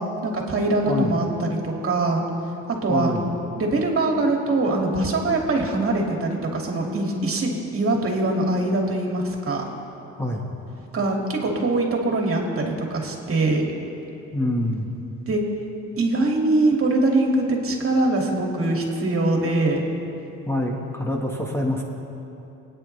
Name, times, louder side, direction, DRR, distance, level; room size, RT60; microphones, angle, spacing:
voice 1, 0.0-2.2 2.8-3.1 3.6-9.6 10.9-13.7 15.3-15.4 16.0-19.8, right 2 dB, 45° right, 0 dB, 2.5 m, -23 dB
voice 2, 0.9-1.2 2.9-3.3 10.2-10.5 14.3-14.9 20.4-21.8, left 1 dB, 10° left, 0 dB, 1.6 m, -26 dB
26.5 x 9.5 x 3.4 m, 3.0 s
cardioid pair, 90°, 30 cm